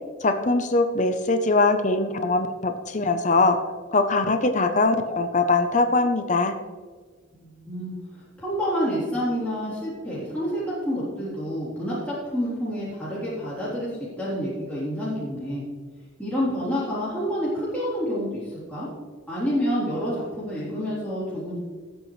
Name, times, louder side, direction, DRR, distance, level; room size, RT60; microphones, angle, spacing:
voice 1, 0.2-3.6 3.9-6.5, left 3 dB, 40° left, 8 dB, 0.7 m, -22 dB
voice 2, 7.3-13.9 14.2-15.6 16.2-18.9 19.3-21.6, equal, 5° left, -10 dB, 3.5 m, -28 dB
18.5 x 8.1 x 3.2 m, 1.5 s
head